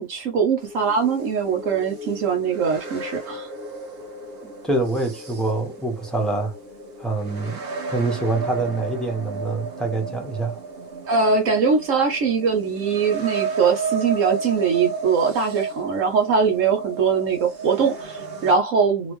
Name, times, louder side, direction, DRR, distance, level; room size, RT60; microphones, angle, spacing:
voice 1, 0.0-3.5 11.1-19.1, right 5 dB, 70° right, 1.1 m, -21 dB
sound 1, 0.6-18.5, right 4 dB, 50° right, 1.1 m, -33 dB
voice 2, 4.4-6.5 7.0-7.6 7.9-10.6, right 2 dB, ahead, 1.1 m, -25 dB
3.4 x 2.9 x 3.0 m
omnidirectional pair, 1.4 m